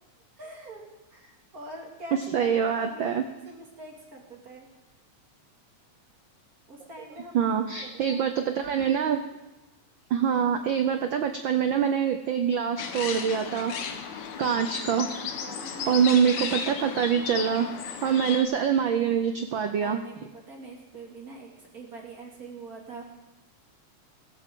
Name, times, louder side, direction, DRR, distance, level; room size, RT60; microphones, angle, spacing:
voice 1, 0.4-0.8 1.1-4.7 6.7-7.4 7.8-8.3 15.4-16.0 18.3-18.4 19.7-23.1, right 2 dB, 30° right, -1 dB, 2.7 m, -44 dB
voice 2, 2.3-3.2 7.3-9.2 10.1-13.7 14.4-15.1 15.9-17.7 18.0-20.0, right 8 dB, 85° right, 7 dB, 1.0 m, -25 dB
sound 1, 12.8-18.4, left 6 dB, 75° left, 2.5 m, -34 dB
17.0 x 15.5 x 3.8 m, 1.0 s
omnidirectional pair, 3.3 m